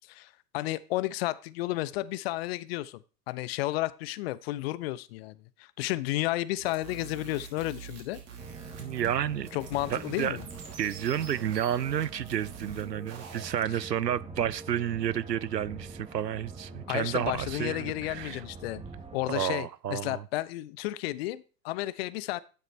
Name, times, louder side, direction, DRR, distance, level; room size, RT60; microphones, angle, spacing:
voice 1, 0.1-3.0 3.3-8.2 9.5-10.4 16.9-18.8 19.1-22.4, left 17 dB, 40° left, 0.6 m, -32 dB
sound 1, 6.5-13.6, right 6 dB, 30° right, 2.7 m, -46 dB
sound 2, 8.4-19.4, right 3 dB, 15° right, 1.4 m, -45 dB
voice 2, 8.8-9.5 9.9-10.4 10.8-18.4 19.3-20.2, right 10 dB, 85° right, 0.6 m, -31 dB
11.5 x 9.1 x 3.2 m
figure-of-eight pair, 90°, 48 cm